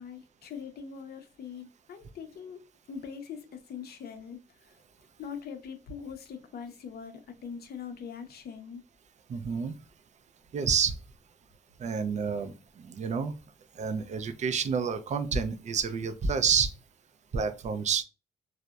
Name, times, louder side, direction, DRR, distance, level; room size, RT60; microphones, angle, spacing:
voice 1, 0.0-2.6 2.9-4.7 5.2-8.8, left 6 dB, 50° left, 0.5 m, -42 dB
voice 2, 9.3-9.7 10.5-11.0 11.8-13.3 13.8-16.7 17.3-18.0, right 6 dB, 35° right, 0.4 m, -29 dB
2.7 x 2.0 x 2.2 m
cardioid pair, 90°, 20 cm